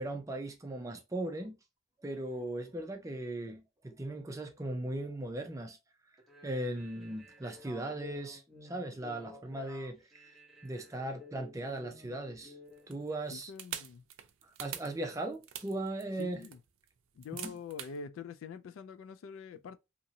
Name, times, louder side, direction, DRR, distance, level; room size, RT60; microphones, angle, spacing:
voice 1, 0.0-1.5 2.0-5.8 6.4-10.4 10.6-12.5 12.9-13.5 14.6-16.4 17.4-17.5, right 1 dB, 15° right, 0.4 m, -38 dB
sound 1, 6.2-12.9, left 2 dB, ahead, 0.8 m, -53 dB
sound 2, 12.7-18.0, right 10 dB, 90° right, 0.4 m, -44 dB
voice 2, 13.3-14.0 16.2-16.6 17.1-19.8, left 6 dB, 85° left, 0.3 m, -45 dB
2.8 x 2.6 x 2.7 m
head